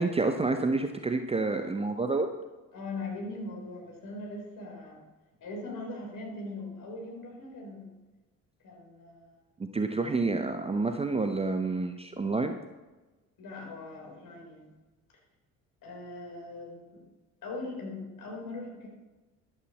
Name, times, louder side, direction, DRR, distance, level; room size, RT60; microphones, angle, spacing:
voice 1, 0.0-2.3 9.6-12.6, right 3 dB, 15° right, 7 dB, 0.7 m, -28 dB
voice 2, 2.7-5.0 5.4-8.0 8.6-9.4 13.4-14.7 15.8-17.0 17.4-18.9, left 2 dB, 50° left, -1 dB, 4.1 m, -40 dB
13.5 x 11.0 x 3.1 m, 1.2 s
figure-of-eight pair, 50°, 43 cm